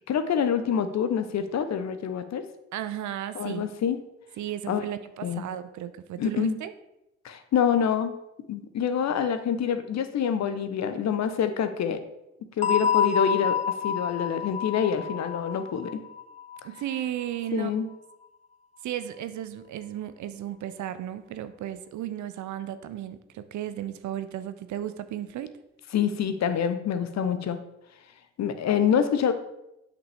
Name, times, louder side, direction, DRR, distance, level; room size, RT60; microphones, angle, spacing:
voice 1, 0.1-2.4 3.3-4.0 4.7-4.8 5.2-5.4 6.2-6.6 7.2-8.1 8.5-12.0 12.6-13.6 13.8-16.0 17.5-17.9 25.9-27.6 28.4-29.3, left 8 dB, 50° left, 10 dB, 0.8 m, -26 dB
voice 2, 2.7-3.7 4.4-6.7 16.6-17.7 18.8-25.5, right 11 dB, 55° right, 12 dB, 0.6 m, -34 dB
sound 1, 12.6-17.2, left 7 dB, 20° left, 0.4 m, -28 dB
8.3 x 6.0 x 3.5 m, 0.88 s
hypercardioid pair, 40°, 34 cm